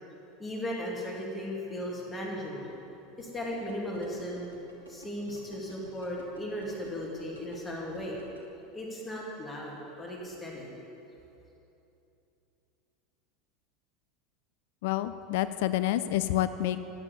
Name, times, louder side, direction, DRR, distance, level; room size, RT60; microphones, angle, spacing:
voice 1, 0.4-2.7 3.2-4.5 4.9-8.2 8.7-10.7, equal, 15° left, -3 dB, 2.5 m, -36 dB
sound 1, 3.2-8.4, left 1 dB, 90° left, 1.2 m, -51 dB
voice 2, 14.8-16.8, left 13 dB, 55° left, 13 dB, 0.3 m, -28 dB
10.5 x 7.2 x 6.8 m, 2.9 s
figure-of-eight pair, 75°, 0 cm